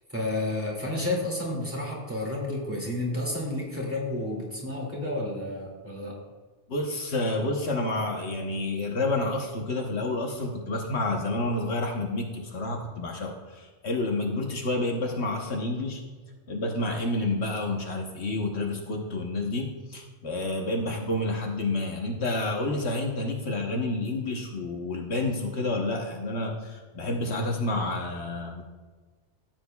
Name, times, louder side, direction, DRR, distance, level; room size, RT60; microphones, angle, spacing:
voice 1, 0.1-6.1, left 1 dB, 10° right, -4 dB, 2.3 m, -31 dB
voice 2, 6.7-16.0 16.5-28.6, left 2 dB, 65° left, 1 dB, 1.3 m, -29 dB
14.5 x 7.6 x 2.3 m, 1.4 s
omnidirectional pair, 1.2 m